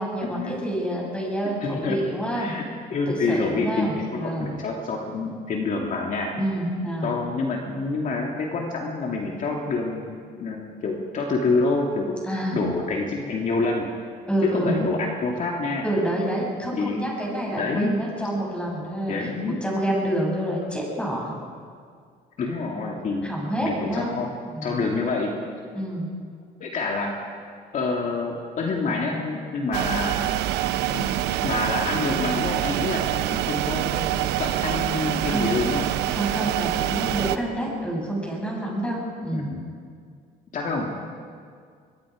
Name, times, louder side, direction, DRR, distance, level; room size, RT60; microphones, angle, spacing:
voice 1, 0.0-2.6 3.1-4.5 6.3-7.2 12.3-12.6 14.2-14.8 15.8-19.2 19.4-21.3 23.2-24.1 24.5-24.8 25.7-26.1 35.3-35.6 36.1-39.5, right 1 dB, 5° left, -2 dB, 7.5 m, -28 dB
voice 2, 1.4-1.9 2.3-2.6 2.9-6.3 7.0-10.1 10.4-13.9 14.4-15.8 16.7-17.0 17.6-18.0 19.1-19.6 22.4-23.3 23.6-24.3 24.6-25.4 26.6-27.1 27.7-30.2 30.9-35.9 39.3-39.6 40.5-40.9, left 3 dB, 50° left, 0 dB, 2.4 m, -27 dB
sound 1, 29.7-37.4, right 13 dB, 85° right, 0.9 m, -26 dB
23.5 x 22.0 x 5.0 m, 2.1 s
cardioid pair, 110°, 17 cm